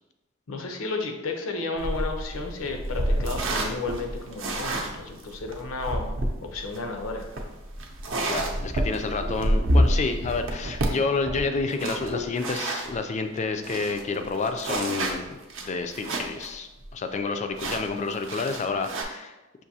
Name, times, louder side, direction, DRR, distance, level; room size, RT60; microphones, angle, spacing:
voice 1, 0.5-6.1 6.4-7.3, left 3 dB, 75° left, 4 dB, 0.6 m, -32 dB
sound 1, 1.8-12.9 13.4-13.5 13.6-16.5 16.8-16.9 17.6-19.0, right 1 dB, 65° right, 0.6 m, -28 dB
voice 2, 8.3-19.4, left 4 dB, 35° left, 7 dB, 0.3 m, -29 dB
5.9 x 2.6 x 2.7 m, 1.0 s
head